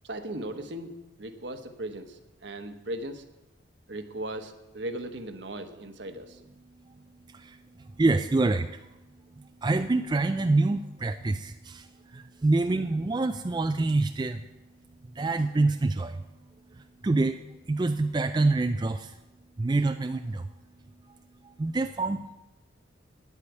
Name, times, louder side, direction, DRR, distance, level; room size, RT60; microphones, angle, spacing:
voice 1, 0.0-3.2 3.9-6.4, right 1 dB, 65° right, 7 dB, 1.1 m, -37 dB
voice 2, 6.7-9.1 9.3-14.5 15.0-16.2 16.7-19.2 19.6-20.5 21.1-21.2 21.4-22.3, right 2 dB, 20° right, 7 dB, 0.3 m, -27 dB
9.9 x 8.3 x 8.1 m, 0.98 s
head